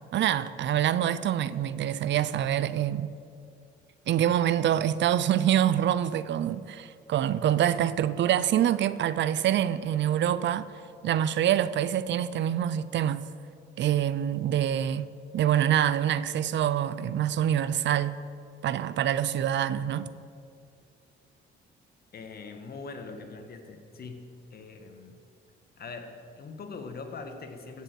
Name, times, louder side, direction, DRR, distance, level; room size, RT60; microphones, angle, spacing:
voice 1, 0.1-3.1 4.1-10.7 11.0-13.2 13.8-18.2 18.6-20.1, right 10 dB, 65° right, 0.5 m, -26 dB
voice 2, 22.1-25.2 25.8-27.8, left 4 dB, 50° left, 1.7 m, -42 dB
15.5 x 6.8 x 7.8 m
cardioid pair, 90°, 20 cm